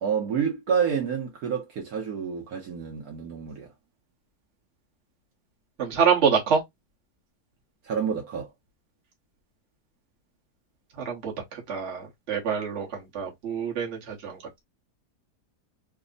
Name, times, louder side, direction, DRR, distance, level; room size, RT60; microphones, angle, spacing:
voice 1, 0.0-3.7 7.8-8.5, right 7 dB, 65° right, 1.2 m, -28 dB
voice 2, 5.8-6.6 11.1-11.3 11.7-12.9 13.1-14.4, right 6 dB, 50° right, 1.3 m, -25 dB
3.3 x 2.0 x 3.7 m
omnidirectional pair, 1.7 m